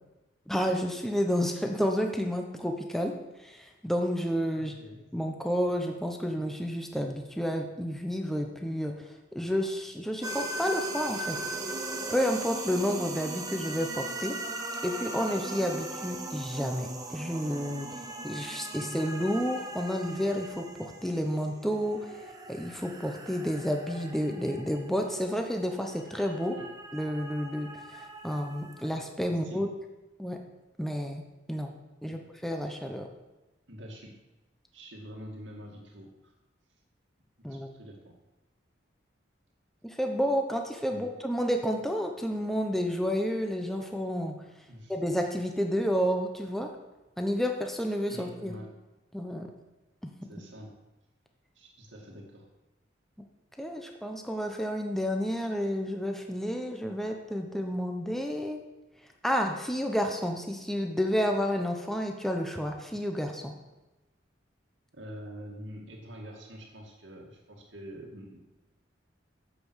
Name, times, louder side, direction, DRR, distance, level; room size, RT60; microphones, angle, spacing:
voice 1, 0.5-3.1 3.4-4.7 5.1-11.4 12.1-14.4 14.8-17.9 18.2-22.2 22.5-26.6 26.9-29.7 30.2-30.4 30.8-31.2 31.5-31.7 32.0-33.1 37.4-37.7 39.8-44.4 44.9-46.7 47.2-48.5 49.1-49.5 50.0-50.1 53.6-58.6 59.2-63.5, equal, ahead, 3 dB, 0.9 m, -30 dB
voice 2, 4.5-5.0 26.6-26.7 29.3-29.6 32.1-32.2 33.7-34.1 34.7-36.3 37.5-38.1 40.9-41.1 44.7-45.0 48.1-48.7 50.3-50.7 51.6-52.5 64.9-68.4, equal, 75° right, -1 dB, 2.2 m, -45 dB
sound 1, 10.2-28.8, right 2 dB, 20° right, 1.1 m, -39 dB
10.0 x 7.8 x 6.4 m, 1.0 s
head